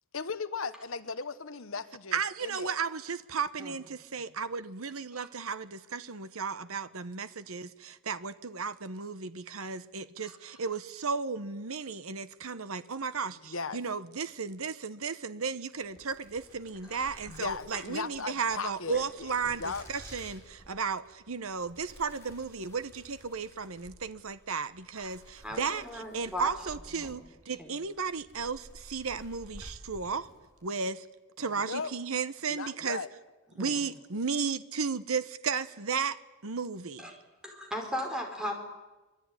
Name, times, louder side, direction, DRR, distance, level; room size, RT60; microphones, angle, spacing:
voice 1, 0.1-2.7 13.4-13.8 17.3-19.8 31.4-31.9 32.5-33.1, left 4 dB, 65° left, 1.2 m, -37 dB
voice 2, 2.1-30.3 30.6-31.1 31.4-33.0 33.6-37.1, right 5 dB, 75° right, 1.0 m, -34 dB
sound 1, 15.8-30.7, equal, 10° left, 6.1 m, -53 dB
voice 3, 25.4-26.5 27.0-27.1 27.6-27.7 33.6-33.8 37.0-37.1 37.4-38.6, left 1 dB, 5° right, 4.9 m, -37 dB
25.0 x 22.5 x 9.8 m
head